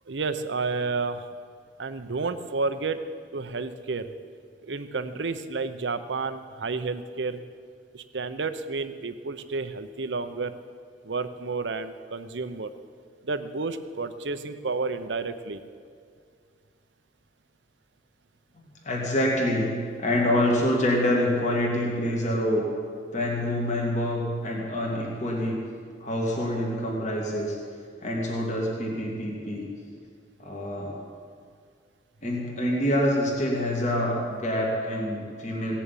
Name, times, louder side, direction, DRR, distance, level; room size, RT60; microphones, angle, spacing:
voice 1, 0.1-1.3 1.8-3.0 3.3-4.1 4.6-7.4 7.9-10.6 11.0-12.7 13.2-15.6, right 4 dB, 85° right, 10 dB, 0.8 m, -31 dB
voice 2, 18.8-22.6 23.1-25.6 26.0-27.6 28.0-29.7 30.4-31.0 32.2-35.7, left 1 dB, 40° left, -2 dB, 2.4 m, -26 dB
17.0 x 7.1 x 9.0 m, 2.2 s
head